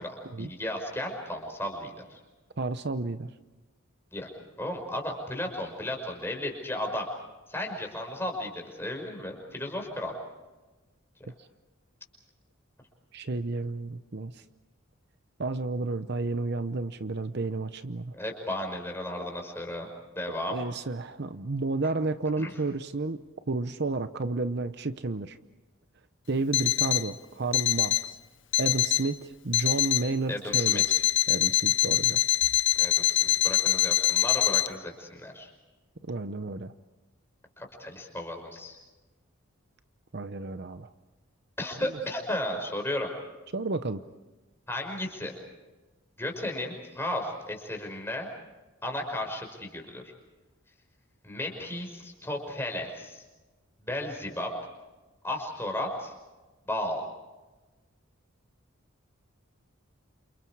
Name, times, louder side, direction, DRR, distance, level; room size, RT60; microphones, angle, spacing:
voice 1, 0.0-2.2 4.1-4.3 4.6-7.1 7.5-10.1 18.1-19.9 20.2-20.6 22.4-22.5 30.3-30.8 32.8-35.5 37.6-38.8 41.6-43.1 44.7-45.3 46.2-48.3 48.8-50.0 51.2-53.2 53.8-54.5 55.2-56.1 56.6-57.0, left 1 dB, 10° left, 2 dB, 5.7 m, -34 dB
voice 2, 2.6-3.3 13.1-14.4 15.4-18.1 20.5-23.2 23.5-25.4 26.3-28.2 28.6-31.0 31.3-32.2 36.0-36.7 40.1-40.9 43.5-44.0, right 3 dB, 55° right, 11 dB, 0.8 m, -31 dB
Alarm, 26.5-27.1 27.5-28.1 28.5-29.1 29.5-30.1 30.5-34.7, left 14 dB, 60° left, 0.9 m, -24 dB
29.5 x 28.5 x 4.8 m, 1.2 s
head